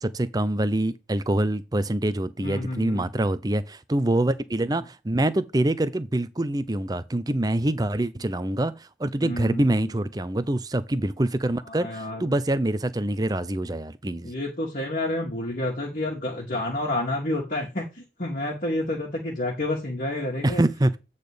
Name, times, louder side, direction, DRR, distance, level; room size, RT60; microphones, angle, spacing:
voice 1, 0.0-14.3 20.4-21.0, right 1 dB, 20° right, 0.6 m, -25 dB
voice 2, 2.4-3.1 9.2-9.9 11.7-12.3 14.2-20.6, left 1 dB, 50° left, 2.1 m, -29 dB
8.9 x 4.0 x 5.0 m
head